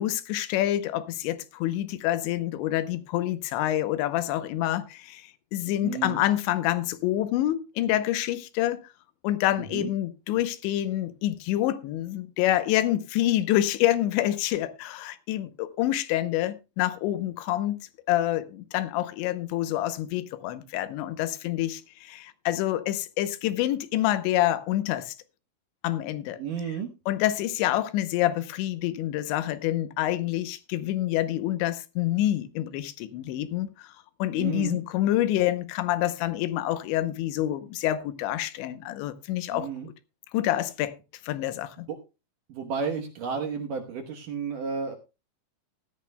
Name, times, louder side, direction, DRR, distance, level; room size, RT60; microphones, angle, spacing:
voice 1, 0.0-8.8 9.2-17.8 18.1-25.1 25.8-26.4 27.1-33.9 34.2-39.7 40.3-40.9 41.2-41.9, left 14 dB, 85° left, 3.1 m, -27 dB
voice 2, 5.8-6.2 9.7-9.9 26.4-26.9 34.3-34.8 39.5-39.9 41.9-42.0 42.5-45.0, right 6 dB, 70° right, 2.0 m, -32 dB
17.0 x 13.5 x 2.2 m
omnidirectional pair, 5.2 m